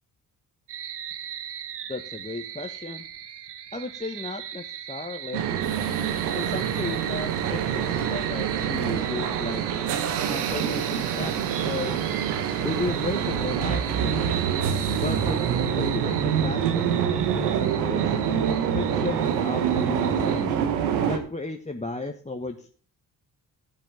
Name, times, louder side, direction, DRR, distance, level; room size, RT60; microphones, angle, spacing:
sound 1, 0.7-20.4, right 9 dB, 55° right, 1.2 m, -38 dB
voice 1, 1.9-3.0 3.7-5.5 6.3-9.6 10.3-12.0 12.6-14.3 14.9-15.4 15.7-18.0 18.7-20.5 21.1-22.7, left 3 dB, 15° left, 4 dB, 1.1 m, -34 dB
sound 2, 5.3-21.2, right 8 dB, 85° right, 1.3 m, -26 dB
10.5 x 7.0 x 6.6 m, 0.42 s
hypercardioid pair, 45°, 48 cm